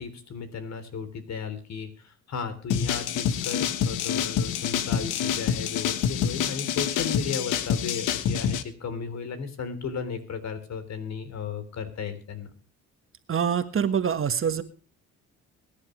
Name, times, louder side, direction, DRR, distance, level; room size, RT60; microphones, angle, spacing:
voice 1, 0.0-12.5, left 5 dB, 60° left, 10 dB, 3.7 m, -35 dB
sound 1, 2.7-8.6, left 8 dB, 90° left, 1.4 m, -27 dB
voice 2, 13.3-14.6, right 7 dB, 45° right, 10 dB, 1.6 m, -25 dB
23.0 x 10.5 x 3.2 m, 0.37 s
cardioid pair, 90°, 30 cm